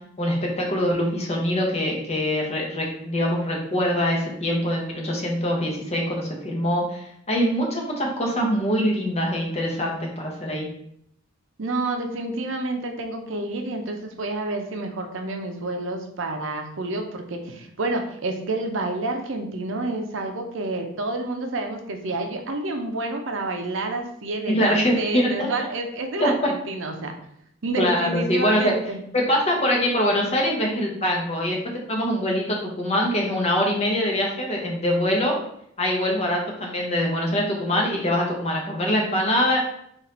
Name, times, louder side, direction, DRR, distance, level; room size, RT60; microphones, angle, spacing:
voice 1, 0.2-10.7 24.5-25.5 26.2-26.5 27.8-28.7 29.1-35.3 35.8-39.6, equal, 30° left, -1 dB, 1.0 m, -23 dB
voice 2, 11.6-27.1 27.6-29.0, right 2 dB, 65° right, 4 dB, 0.6 m, -29 dB
4.0 x 2.6 x 4.2 m, 0.71 s
head